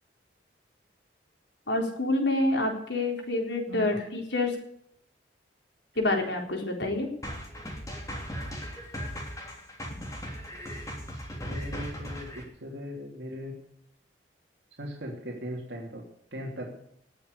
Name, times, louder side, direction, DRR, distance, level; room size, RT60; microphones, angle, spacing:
voice 1, 1.7-4.6 6.0-7.1, left 2 dB, 75° left, 2 dB, 3.9 m, -27 dB
sound 1, 7.2-12.4, equal, 20° left, 3.2 m, -38 dB
voice 2, 11.4-13.6 14.8-16.0 16.3-16.8, equal, 70° right, -1 dB, 3.1 m, -39 dB
19.0 x 7.3 x 8.3 m, 0.72 s
head